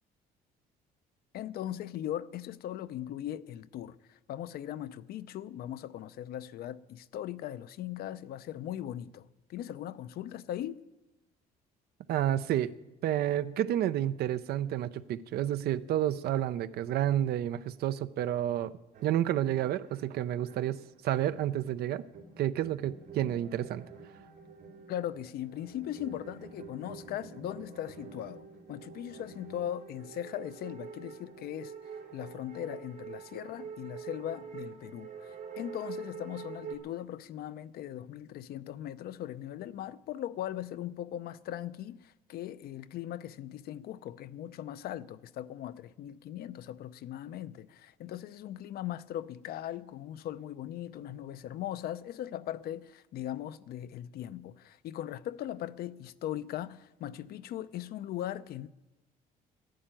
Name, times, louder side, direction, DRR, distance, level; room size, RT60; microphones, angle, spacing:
voice 1, 1.3-10.8 24.9-28.4 28.7-31.7 32.1-58.7, left 11 dB, 65° left, 0.6 m, -39 dB
voice 2, 12.1-12.7 13.0-18.7 19.0-22.0 22.4-23.8, right 12 dB, 70° right, 0.6 m, -30 dB
sound 1, 18.9-36.8, right 6 dB, 85° right, 3.9 m, -47 dB
12.0 x 11.5 x 9.0 m
cardioid pair, 110°, 17 cm